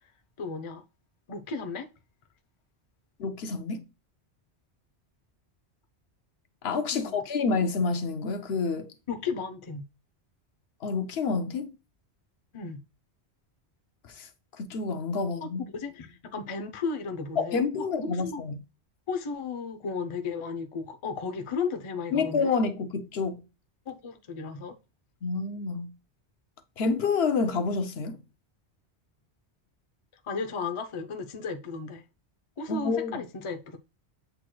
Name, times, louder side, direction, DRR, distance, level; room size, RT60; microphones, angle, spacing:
voice 1, 0.4-0.8 1.3-1.9 6.9-7.2 9.1-9.8 12.5-12.8 15.4-18.4 19.1-22.5 23.9-24.8 30.2-32.0 32.6-33.8, left 5 dB, 35° left, 0.5 m, -34 dB
voice 2, 3.2-3.8 6.6-8.9 10.8-11.7 14.1-14.3 14.6-15.6 17.4-18.6 22.1-23.4 25.2-25.9 26.8-28.2 32.7-33.2, left 4 dB, 70° left, 0.9 m, -28 dB
7.8 x 3.1 x 2.2 m
omnidirectional pair, 1.1 m